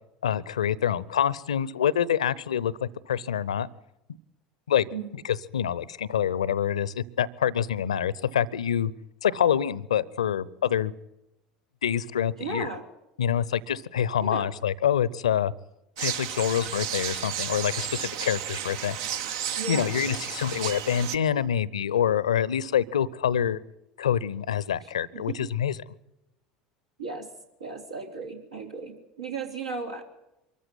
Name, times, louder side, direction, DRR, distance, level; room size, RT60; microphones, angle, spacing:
voice 1, 0.2-3.7 4.7-4.9 5.2-8.9 9.2-10.9 11.8-12.7 13.2-15.5 16.0-19.0 19.7-23.6 24.0-25.7, left 9 dB, 70° left, 22 dB, 0.7 m, -26 dB
voice 2, 12.4-12.9 14.2-14.5 19.6-20.5 25.1-25.4 27.0-27.3 27.6-30.0, right 4 dB, 80° right, 1 dB, 3.8 m, -36 dB
sound 1, 16.0-21.2, right 9 dB, 55° right, 0.9 m, -33 dB
24.5 x 14.0 x 9.6 m, 0.87 s
figure-of-eight pair, 70°, 3 cm